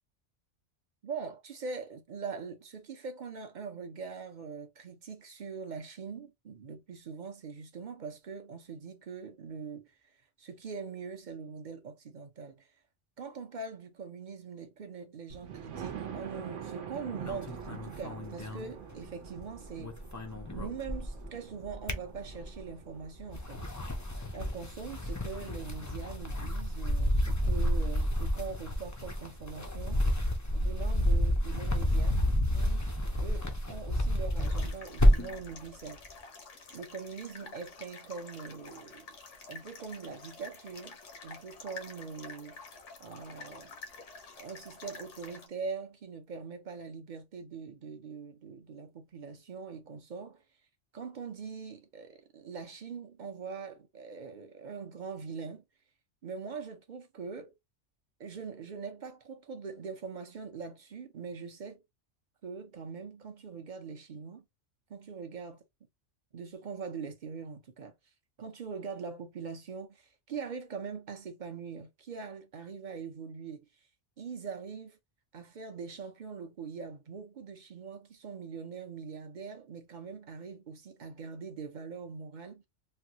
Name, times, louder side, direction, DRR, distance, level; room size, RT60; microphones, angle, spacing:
voice 1, 1.0-12.7 13.2-19.9 20.5-23.6 24.3-30.0 30.5-32.2 32.5-32.8 33.2-36.0 36.7-39.1 39.5-41.0 41.2-42.6 43.0-43.7 44.4-50.4 50.9-55.6 56.2-57.5 58.2-61.8 62.4-64.4 64.9-65.6 66.3-67.9 68.4-73.7 74.2-75.0 75.3-82.6, right 5 dB, 45° right, 0.7 m, -42 dB
Thunder, 15.3-25.0 25.6-25.7 26.1-26.2 26.4-26.5, right 8 dB, 85° right, 1.1 m, -45 dB
sound 1, 17.2-19.4 19.7-21.3 21.6-22.7 23.2-35.4, equal, 30° left, 0.3 m, -30 dB
sound 2, 34.4-45.5, left 4 dB, 80° left, 1.2 m, -49 dB
3.3 x 2.3 x 2.8 m
omnidirectional pair, 1.2 m